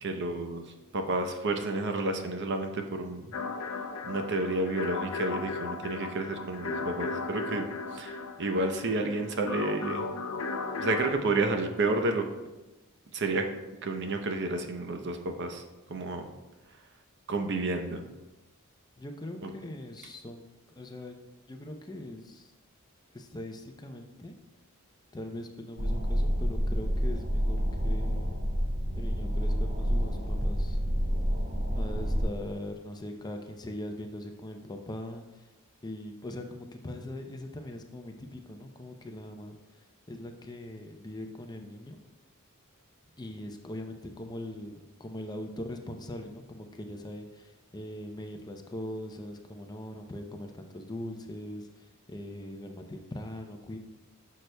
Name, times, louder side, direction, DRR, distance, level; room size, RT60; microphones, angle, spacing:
voice 1, 0.0-0.6 0.9-3.3 4.0-7.6 7.9-10.0 10.8-12.3 13.1-13.5 13.8-15.6 15.9-16.3 17.3-18.0 19.4-19.5, right 2 dB, 55° right, 5 dB, 0.7 m, -30 dB
sound 1, 3.3-11.1, left 4 dB, 65° left, 0.6 m, -36 dB
voice 2, 19.0-20.4 20.8-21.2 21.5-22.5 23.1-24.4 25.1-28.4 29.0-30.8 31.7-35.4 35.8-39.6 40.1-42.0 43.2-53.8, left 1 dB, 20° left, 4 dB, 0.5 m, -41 dB
sound 2, 25.8-32.2, equal, 40° right, 1.3 m, -28 dB
10.5 x 6.6 x 2.2 m, 1.1 s
head